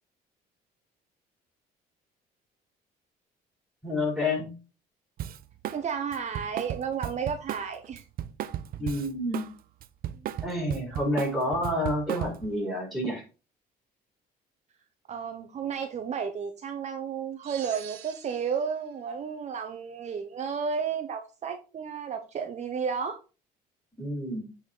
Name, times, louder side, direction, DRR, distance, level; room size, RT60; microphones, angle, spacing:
voice 1, 3.8-4.5 8.8-9.5 10.4-13.2 24.0-24.5, left 1 dB, ahead, -1 dB, 5.0 m, -29 dB
Drum kit, 5.2-5.8 6.1-9.5 9.8-12.5, right 11 dB, 60° right, 0.6 m, -35 dB
voice 2, 5.7-8.0 10.1-10.3 15.1-23.2, right 6 dB, 45° right, 6 dB, 0.9 m, -32 dB
sound 1, 17.4-18.8, right 10 dB, 85° right, 1.8 m, -45 dB
8.4 x 4.3 x 4.4 m, 0.33 s
cardioid pair, 110°, 17 cm